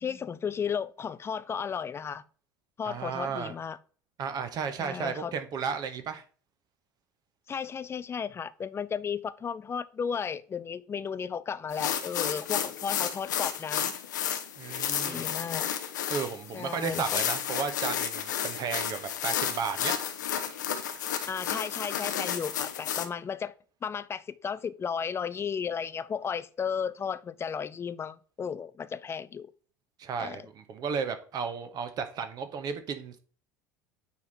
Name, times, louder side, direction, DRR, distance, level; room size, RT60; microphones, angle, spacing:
voice 1, 0.0-2.2 2.8-3.8 4.8-5.3 7.5-13.9 15.1-15.7 16.5-17.2 21.2-23.5 23.8-29.5 30.2-30.4, left 7 dB, 25° left, 0.5 m, -34 dB
voice 2, 2.8-3.5 4.2-6.2 14.6-15.3 16.1-20.0 30.0-33.2, right 6 dB, 40° right, 1.3 m, -34 dB
sound 1, 11.7-23.0, left 9 dB, 75° left, 0.8 m, -32 dB
9.0 x 3.7 x 4.2 m
figure-of-eight pair, 70°, 10 cm